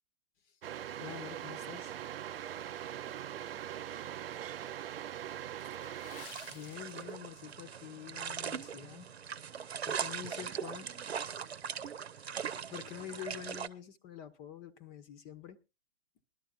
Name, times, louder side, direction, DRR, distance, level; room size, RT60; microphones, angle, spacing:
sound 1, 0.6-6.3, right 11 dB, 65° right, 0.6 m, -41 dB
voice 1, 1.0-1.9 6.5-9.1 9.8-10.9 12.2-12.4 12.7-15.6, left 10 dB, 30° left, 1.0 m, -46 dB
voice 2, 2.9-4.7 9.8-11.9, right 9 dB, 15° right, 0.6 m, -58 dB
Water / Splash splatter, 5.7-7.6 7.9-8.1 8.7-8.9 9.4-9.5, left 7 dB, 60° left, 0.9 m, -54 dB
sound 2, 6.2-13.7, right 7 dB, 80° right, 0.9 m, -40 dB
21.0 x 12.0 x 2.5 m
hypercardioid pair, 125°, 32 cm